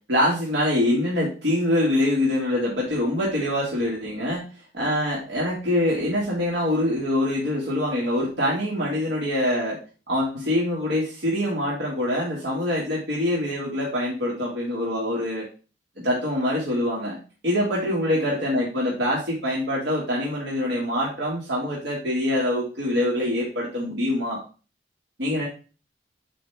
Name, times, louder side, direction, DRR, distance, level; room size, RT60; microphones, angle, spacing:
voice 1, 0.1-4.4 4.7-9.8 10.1-15.5 16.0-17.2 17.4-24.4 25.2-25.5, left 1 dB, 75° right, -5 dB, 2.1 m, -24 dB
7.9 x 5.1 x 3.5 m, 0.35 s
head